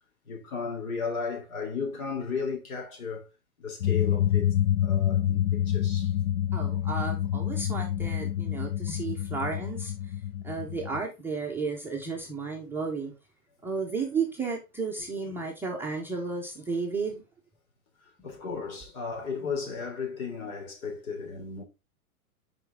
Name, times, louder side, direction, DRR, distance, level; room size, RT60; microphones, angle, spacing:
voice 1, 0.3-3.2 3.6-4.5 4.8-6.1 18.2-21.6, left 5 dB, 65° left, 3.4 m, -34 dB
sound 1, 3.8-11.0, left 11 dB, 85° left, 0.6 m, -27 dB
voice 2, 6.5-9.9 10.4-13.1 13.6-17.2, right 4 dB, 5° right, 0.6 m, -33 dB
5.9 x 5.1 x 3.5 m
hypercardioid pair, 135°, 44 cm